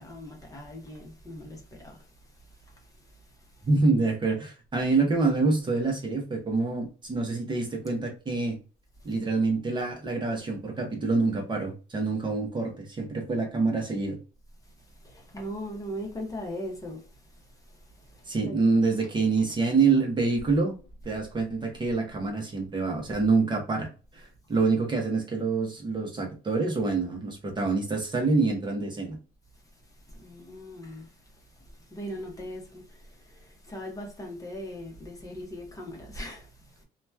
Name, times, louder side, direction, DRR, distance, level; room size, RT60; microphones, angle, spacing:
voice 1, 0.0-2.0 15.0-17.0 18.0-18.7 30.2-31.1 31.9-36.5, equal, 20° left, 0.8 m, -39 dB
voice 2, 3.6-8.6 9.0-14.2 18.3-20.7 21.0-29.2, right 3 dB, 25° right, 0.8 m, -26 dB
2.9 x 2.3 x 2.2 m
cardioid pair, 110°, 17 cm